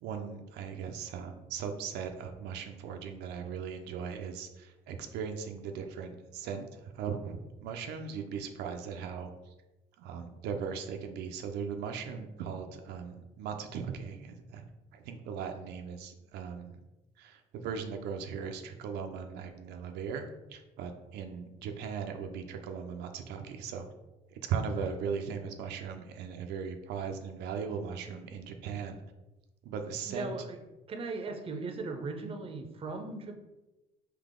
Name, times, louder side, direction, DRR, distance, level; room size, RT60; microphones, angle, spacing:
voice 1, 0.0-9.3 10.0-14.7 14.9-16.8 17.2-23.9 24.3-29.0 29.6-30.4, right 6 dB, 85° right, 5 dB, 0.5 m, -38 dB
voice 2, 30.1-30.6 30.9-33.3, right 3 dB, 35° right, 5 dB, 0.6 m, -38 dB
3.8 x 2.9 x 3.6 m, 1.0 s
cardioid pair, 110°, 17 cm